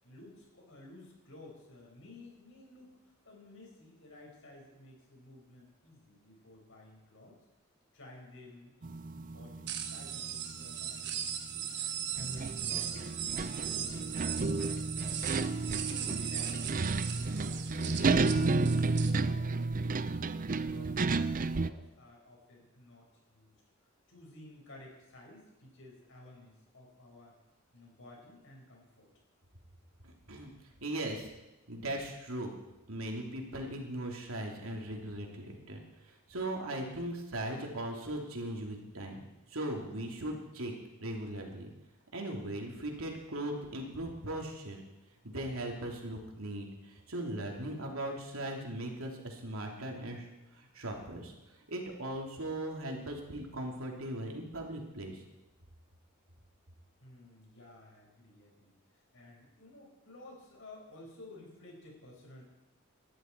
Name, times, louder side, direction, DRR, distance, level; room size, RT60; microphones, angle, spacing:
voice 1, 0.0-7.4 7.9-11.7 12.2-17.6 18.0-20.0 20.6-23.6 24.1-27.4 27.7-29.1 57.0-62.4, left 1 dB, 65° left, -1 dB, 5.7 m, -54 dB
sound 1, 8.8-11.6 12.2-21.7, right 3 dB, 40° right, 0.5 m, -32 dB
sound 2, 9.7-19.1, right 9 dB, 55° right, 1.3 m, -38 dB
voice 2, 30.0-30.5 30.8-31.3 31.7-32.5 32.9-39.2 39.5-40.7 41.0-41.7 42.1-44.8 45.2-50.3 50.5-51.3 51.7-55.2, right 1 dB, 75° right, 1 dB, 3.1 m, -39 dB
20.0 x 12.5 x 4.6 m, 1.0 s
head